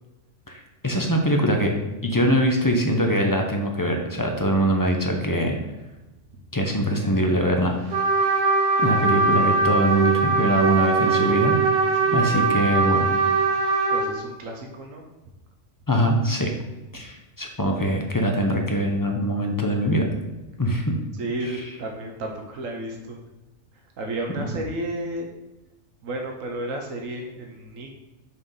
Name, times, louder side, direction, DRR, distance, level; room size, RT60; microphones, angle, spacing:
voice 1, 0.5-1.7 2.0-5.6 6.5-7.8 8.2-8.5 8.8-11.6 12.1-13.1 15.9-16.5 16.9-20.1 20.6-21.0, equal, 20° left, 2 dB, 0.8 m, -23 dB
Trumpet, 7.9-14.1, right 4 dB, 50° right, 2.0 m, -21 dB
voice 2, 12.0-12.5 13.9-15.0 21.2-23.2 24.0-25.3 26.0-27.9, right 1 dB, 80° right, 1 dB, 1.4 m, -32 dB
6.5 x 4.7 x 5.5 m, 1.0 s
omnidirectional pair, 1.3 m